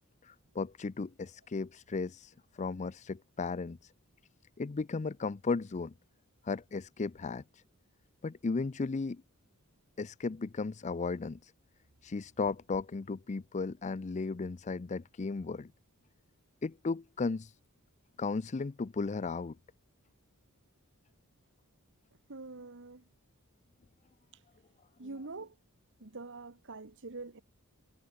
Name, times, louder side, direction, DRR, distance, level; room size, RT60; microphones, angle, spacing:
voice 1, 0.2-3.9 4.6-5.9 6.4-7.6 8.2-9.2 10.0-11.5 12.0-15.7 16.6-17.6 18.2-19.6, left 4 dB, 30° left, 0.5 m, -35 dB
voice 2, 22.3-23.1 24.3-24.4 25.0-25.5 26.0-27.4, right 3 dB, 60° right, 1.4 m, -45 dB
head